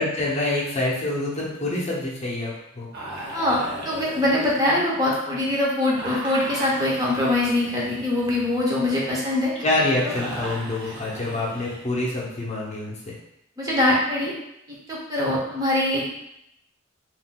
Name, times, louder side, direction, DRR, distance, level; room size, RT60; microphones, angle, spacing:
voice 1, 0.0-2.9 9.6-13.1, left 2 dB, 35° left, -4 dB, 0.6 m, -26 dB
sound 1, 2.9-5.3 5.9-11.9, right 1 dB, 55° right, 0.8 m, -38 dB
voice 2, 3.8-9.5 13.6-14.3 14.9-16.1, left 1 dB, 20° right, -5 dB, 0.6 m, -23 dB
3.6 x 2.4 x 2.2 m, 0.80 s
head